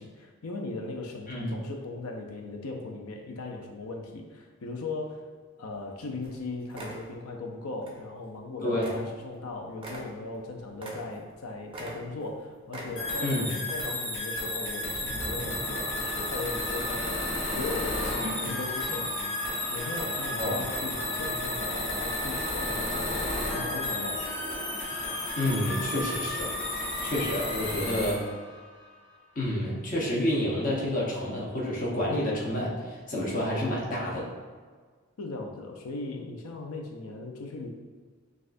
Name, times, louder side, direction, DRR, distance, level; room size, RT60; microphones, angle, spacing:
voice 1, 0.0-5.3 5.6-19.3 19.7-23.2 23.5-24.3 35.2-37.7, left 3 dB, 85° left, 3 dB, 0.5 m, -38 dB
sound 1, 5.8-5.9 6.2-6.4 6.7-7.1 7.8-8.0 8.3-8.4 8.8-9.1 9.3-9.4 9.8-11.4 11.7-12.4 12.7-13.3 13.6-13.8, right 1 dB, 25° right, 0.4 m, -42 dB
voice 2, 8.6-9.0 13.2-13.5 18.2-18.5 20.4-20.6 25.4-26.5 27.0-28.3 29.4-34.3, left 1 dB, 40° left, -4 dB, 0.9 m, -29 dB
sound 2, 13.0-28.1, left 1 dB, 60° left, 1.2 m, -33 dB
sound 3, 14.9-29.3, left 1 dB, 5° left, 1.2 m, -39 dB
6.2 x 2.4 x 2.5 m, 1.5 s
head